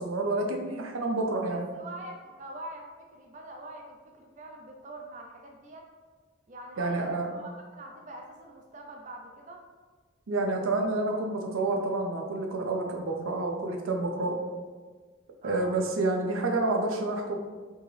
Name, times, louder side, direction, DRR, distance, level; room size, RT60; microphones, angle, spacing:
voice 1, 0.0-1.7 6.8-7.3 10.3-14.4 15.4-17.3, right 2 dB, 90° right, 2 dB, 0.6 m, -29 dB
voice 2, 1.5-5.8 6.5-9.6 15.4-15.7, right 1 dB, 40° right, 1 dB, 0.4 m, -44 dB
4.5 x 2.8 x 3.3 m, 1.4 s
head